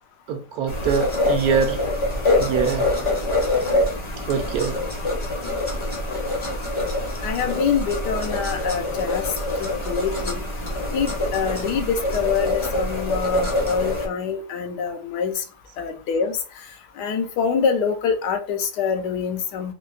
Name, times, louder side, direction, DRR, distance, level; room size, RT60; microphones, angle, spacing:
voice 1, 0.3-1.8 2.4-2.9 4.3-4.8 9.6-9.7, right 6 dB, 70° right, 1.1 m, -24 dB
sound 1, 0.7-14.1, left 2 dB, 30° left, 0.5 m, -25 dB
voice 2, 7.2-9.3 9.6-10.4 10.9-15.4 15.8-16.4 17.0-19.7, left 6 dB, 80° left, 1.3 m, -25 dB
4.5 x 2.1 x 2.4 m
omnidirectional pair, 1.8 m